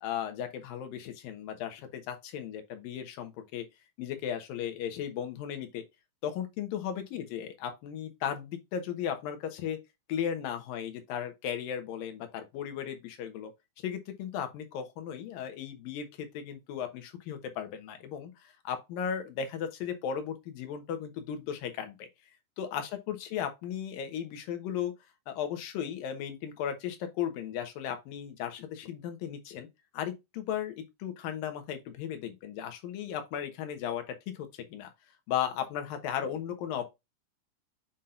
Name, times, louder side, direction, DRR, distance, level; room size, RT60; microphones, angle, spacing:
voice 1, 0.0-3.6 4.0-5.8 6.2-9.8 10.1-13.5 13.8-22.1 22.6-24.9 25.3-29.7 29.9-34.9 35.3-36.9, left 9 dB, 85° left, 2.9 m, -36 dB
7.3 x 5.7 x 2.5 m
omnidirectional pair, 3.9 m